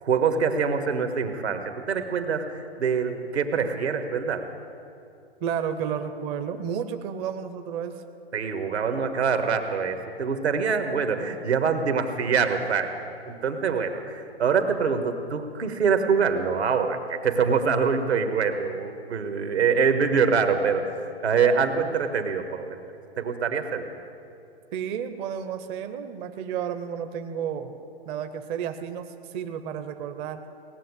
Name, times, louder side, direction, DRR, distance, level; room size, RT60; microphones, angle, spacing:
voice 1, 0.0-4.5 8.3-22.8 23.2-23.9, right 5 dB, 85° right, 7 dB, 1.5 m, -25 dB
voice 2, 5.4-7.9 24.7-27.8 28.1-30.4, right 8 dB, 20° right, 8 dB, 0.5 m, -32 dB
18.0 x 7.3 x 9.6 m, 2.6 s
hypercardioid pair, 135°, 32 cm